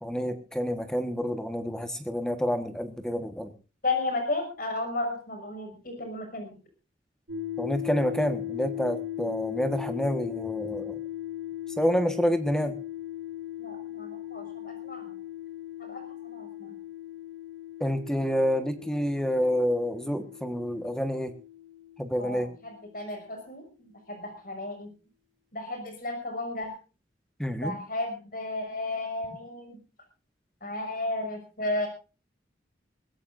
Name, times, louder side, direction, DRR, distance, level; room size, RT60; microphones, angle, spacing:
voice 1, 0.0-3.5 7.6-11.0 11.8-12.7 17.8-21.3 22.0-22.5 27.4-27.8, equal, 5° left, 8 dB, 1.4 m, -28 dB
voice 2, 3.8-6.6 13.6-15.1 15.8-16.8 22.2-24.9 25.5-26.7 27.6-29.8 30.6-31.9, left 2 dB, 50° left, 6 dB, 6.0 m, -34 dB
sound 1, 7.3-22.8, left 12 dB, 85° right, 6.2 m, -38 dB
22.0 x 17.0 x 2.6 m, 0.34 s
head